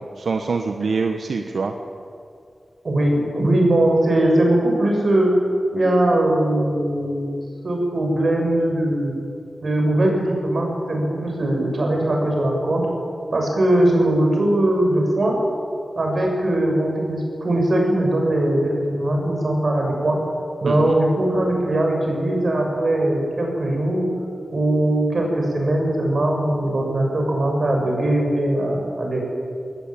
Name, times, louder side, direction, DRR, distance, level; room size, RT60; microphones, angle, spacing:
voice 1, 0.0-1.7 20.7-20.9, right 4 dB, 85° right, 5 dB, 1.3 m, -25 dB
voice 2, 2.8-5.3 5.7-7.3 7.6-9.2 9.6-12.8 13.3-15.4 16.0-20.2 20.6-24.1 24.5-29.2, right 1 dB, 55° right, 1 dB, 6.8 m, -20 dB
21.0 x 18.5 x 9.1 m, 2.4 s
wide cardioid pair, 110°, 0 cm